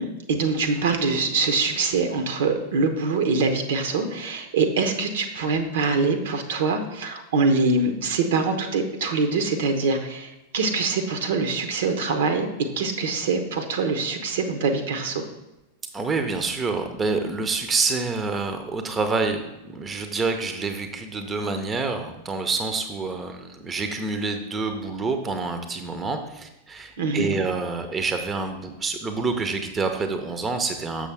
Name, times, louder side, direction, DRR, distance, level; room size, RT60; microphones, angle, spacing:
voice 1, 0.0-12.5 12.8-15.3 27.0-27.3, right 4 dB, 60° right, 7 dB, 0.7 m, -24 dB
voice 2, 15.9-19.4 19.7-31.1, right 4 dB, 20° right, 7 dB, 0.6 m, -27 dB
6.6 x 6.2 x 3.4 m, 0.96 s
figure-of-eight pair, 90°, 0 cm